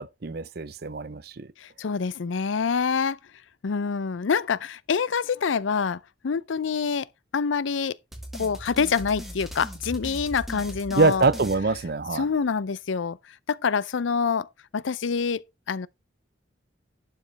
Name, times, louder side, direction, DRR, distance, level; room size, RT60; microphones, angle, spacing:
voice 1, 0.0-1.5 11.0-12.3, right 3 dB, 55° right, 0.6 m, -24 dB
voice 2, 1.6-3.2 3.6-7.1 7.3-8.0 8.4-11.3 12.1-13.2 13.5-14.5 14.7-15.9, left 5 dB, 80° left, 0.5 m, -26 dB
sound 1, 8.1-12.4, equal, ahead, 1.9 m, -39 dB
11.5 x 5.3 x 4.1 m
head